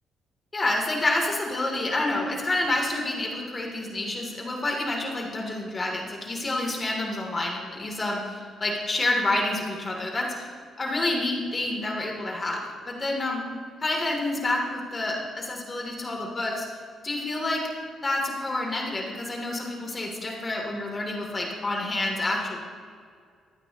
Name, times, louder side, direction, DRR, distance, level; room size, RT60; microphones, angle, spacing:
voice 1, 0.5-10.5 10.8-13.4 13.8-16.7 17.0-17.6 18.0-22.6, left 2 dB, 30° left, -1 dB, 3.2 m, -28 dB
24.0 x 9.0 x 3.1 m, 2.2 s
cardioid pair, 90°, 0 cm